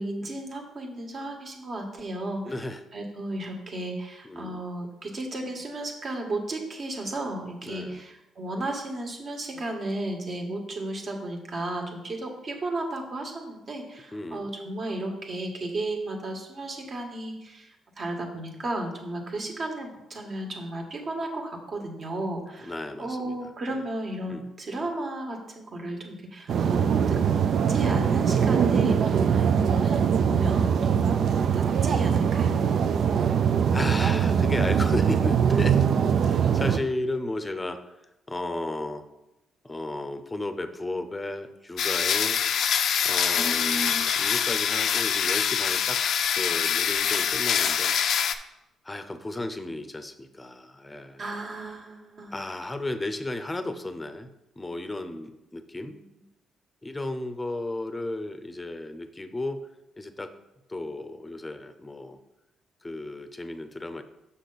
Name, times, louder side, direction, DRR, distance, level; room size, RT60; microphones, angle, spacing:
voice 1, 0.0-2.5 2.9-17.7 18.0-22.7 23.0-27.2 27.7-32.6 43.3-44.1 51.2-52.4, right 1 dB, 45° right, 2 dB, 1.6 m, -34 dB
voice 2, 2.4-2.8 4.2-4.6 7.7-8.0 14.1-14.5 22.6-23.8 24.3-24.5 33.7-35.8 36.2-38.0 38.3-39.0 39.6-42.4 43.0-46.0 46.3-48.0 48.8-51.2 52.3-56.0 56.8-59.6 60.0-60.3 60.7-62.2 62.8-64.0, left 2 dB, 15° left, 9 dB, 0.7 m, -34 dB
sound 1, 26.5-36.8, right 7 dB, 60° right, 0.4 m, -22 dB
sound 2, 41.8-48.3, left 8 dB, 70° left, 0.4 m, -25 dB
6.6 x 5.7 x 4.0 m, 0.92 s
cardioid pair, 90°, 0 cm